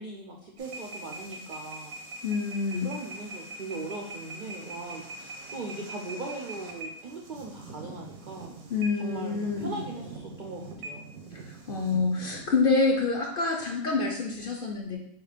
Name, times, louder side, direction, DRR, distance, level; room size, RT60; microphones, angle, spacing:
voice 1, 0.0-1.9 2.8-8.5 8.9-11.1, right 2 dB, 75° right, 0 dB, 0.4 m, -39 dB
sound 1, 0.6-12.4, right 2 dB, 90° right, 1.2 m, -43 dB
voice 2, 2.2-2.9 8.7-9.8 11.3-15.0, left 4 dB, 55° left, 0 dB, 0.6 m, -27 dB
4.5 x 2.4 x 4.9 m, 0.72 s
omnidirectional pair, 1.5 m